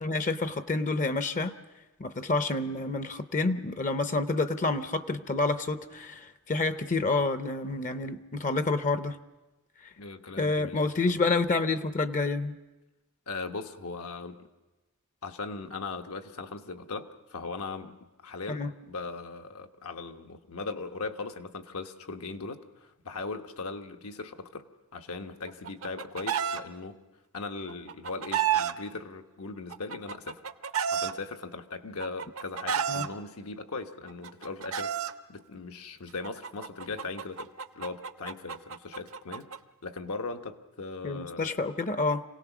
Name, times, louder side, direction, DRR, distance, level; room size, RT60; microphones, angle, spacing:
voice 1, 0.0-1.5 2.0-9.2 9.8-9.9 10.4-12.6 18.5-18.7 32.9-33.1 41.0-42.2, left 3 dB, 35° left, 10 dB, 0.6 m, -28 dB
voice 2, 10.0-10.8 13.3-14.4 15.2-18.0 18.2-24.7 24.9-27.0 27.3-30.4 30.9-34.9 35.3-37.5 37.7-39.5 39.8-41.6, left 3 dB, 80° left, 6 dB, 1.1 m, -39 dB
Chicken rooster, 25.5-26.6 27.7-28.7 29.7-31.1 32.0-33.1 34.1-35.1 36.2-39.6, right 8 dB, 65° right, 0.7 m, -30 dB
27.0 x 17.5 x 6.0 m, 1.1 s
head